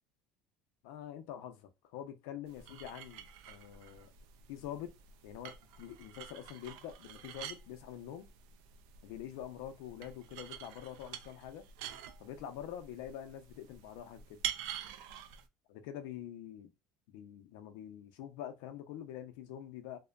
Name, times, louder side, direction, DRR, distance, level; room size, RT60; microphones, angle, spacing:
voice 1, 0.8-1.6 1.9-4.1 4.5-4.9 5.2-8.3 9.0-11.6 12.2-14.4 15.7-16.7 17.1-20.0, left 10 dB, 70° left, 0.6 m, -45 dB
sound 1, 2.5-15.4, right 10 dB, 70° right, 0.4 m, -47 dB
2.7 x 2.1 x 2.4 m
cardioid pair, 165°, 0 cm